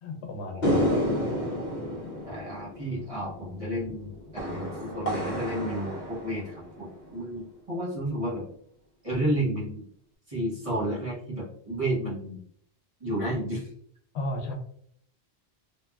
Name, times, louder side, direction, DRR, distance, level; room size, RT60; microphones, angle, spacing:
voice 1, 0.0-0.9 14.1-14.5, left 2 dB, 80° left, 1 dB, 0.9 m, -34 dB
sound 1, 0.6-7.1, equal, 50° left, 0.7 m, -31 dB
voice 2, 2.3-8.5 9.0-9.8 10.3-12.4 13.0-13.7, right 1 dB, 35° right, -6 dB, 0.8 m, -31 dB
2.8 x 2.3 x 2.2 m, 0.64 s
omnidirectional pair, 1.1 m